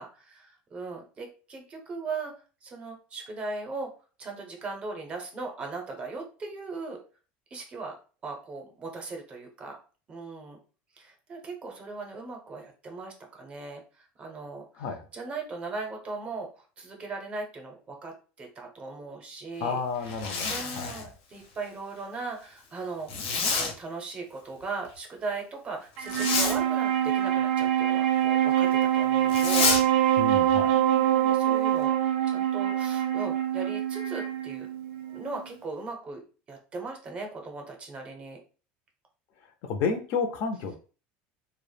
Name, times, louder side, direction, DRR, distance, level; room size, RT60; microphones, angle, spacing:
voice 1, 0.0-2.3 2.6-3.9 4.2-7.0 7.5-7.9 8.2-9.8 10.1-10.6 11.0-14.9 15.1-19.8 20.1-34.7 35.1-36.2 36.5-38.4, right 3 dB, 25° right, 2 dB, 0.5 m, -38 dB
voice 2, 14.8-15.1 19.6-21.1 30.2-30.8 39.6-40.8, left 5 dB, 50° left, 7 dB, 0.4 m, -31 dB
Zipper (clothing), 20.0-21.1 23.1-23.7 26.0-26.6 29.3-29.8, left 5 dB, 80° left, 0.7 m, -28 dB
Wind instrument woodwind instrument, 26.0-35.5, right 11 dB, 80° right, 0.4 m, -25 dB
2.0 x 2.0 x 3.2 m, 0.37 s
cardioid pair, 165°, 5 cm